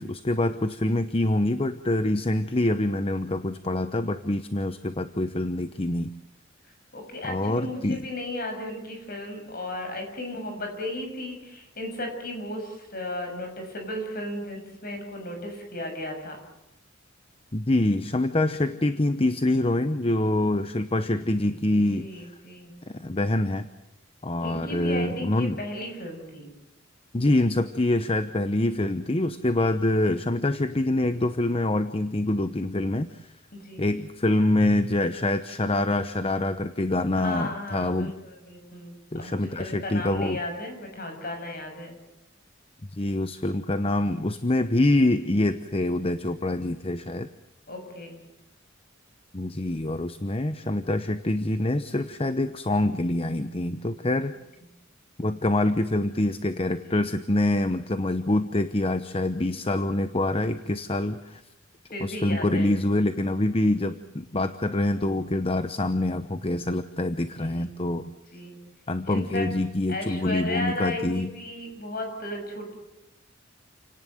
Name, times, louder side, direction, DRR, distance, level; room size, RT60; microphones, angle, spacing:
voice 1, 0.0-6.1 7.3-8.0 17.5-22.1 23.0-23.6 24.2-25.6 27.1-33.3 33.8-38.1 39.1-40.4 43.0-47.3 49.3-54.3 55.2-61.4 62.0-68.1 68.9-71.3, left 1 dB, 30° left, 11 dB, 0.9 m, -25 dB
voice 2, 6.9-16.4 21.7-22.7 24.4-26.5 33.5-33.8 37.2-42.0 47.7-48.2 61.9-62.7 67.4-67.7 68.3-68.6 69.0-69.5 69.9-72.7, left 1 dB, 50° left, 4 dB, 7.0 m, -35 dB
29.0 x 18.0 x 8.0 m, 0.93 s
head